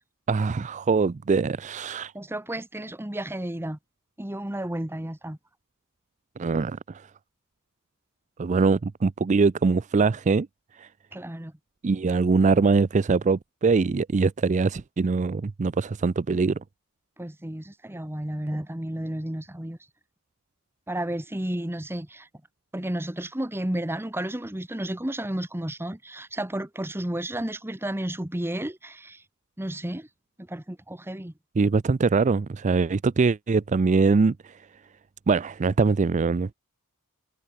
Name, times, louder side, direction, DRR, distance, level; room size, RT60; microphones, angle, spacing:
voice 1, 0.3-2.1 6.4-7.1 8.4-10.5 10.7-10.9 11.8-16.6 31.6-34.6 35.3-36.5, right 4 dB, 35° right, 0.4 m, -23 dB
voice 2, 2.1-3.8 4.2-5.4 11.1-11.5 17.2-19.8 20.9-22.3 22.7-29.2 29.6-30.1 30.4-31.3, right 1 dB, 10° right, 1.2 m, -32 dB
head